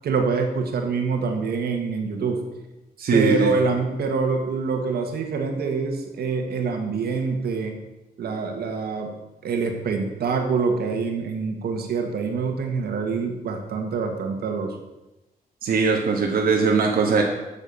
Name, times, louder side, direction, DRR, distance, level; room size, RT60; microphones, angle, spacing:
voice 1, 0.0-2.4 3.1-7.8 8.2-9.1 9.4-14.8, right 4 dB, 85° right, 4 dB, 1.7 m, -25 dB
voice 2, 3.0-3.5 15.6-17.2, right 4 dB, 70° right, 0 dB, 1.5 m, -20 dB
9.0 x 7.1 x 7.0 m, 1.0 s
wide cardioid pair, 170°, 16 cm